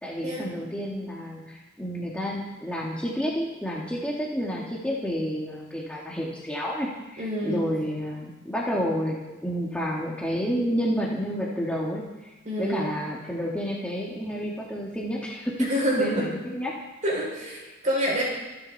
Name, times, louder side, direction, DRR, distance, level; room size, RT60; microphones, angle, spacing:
voice 1, 0.0-12.3 12.6-16.7, equal, 5° left, -5 dB, 2.2 m, -30 dB
voice 2, 7.2-7.6 12.4-12.9 15.7-16.3 17.0-18.2, equal, 40° right, -4 dB, 6.6 m, -27 dB
26.5 x 10.5 x 4.3 m, 1.1 s
head